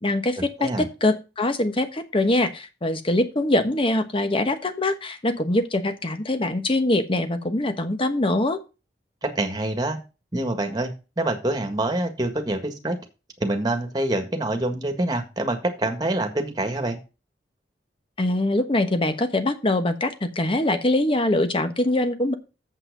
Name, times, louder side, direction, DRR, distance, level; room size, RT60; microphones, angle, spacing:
voice 1, 0.0-8.6 18.2-22.3, left 1 dB, 30° left, 9 dB, 1.2 m, -23 dB
voice 2, 9.2-10.0 10.3-13.0 13.4-17.0, right 1 dB, 25° right, 5 dB, 1.7 m, -26 dB
7.7 x 5.8 x 6.6 m, 0.30 s
head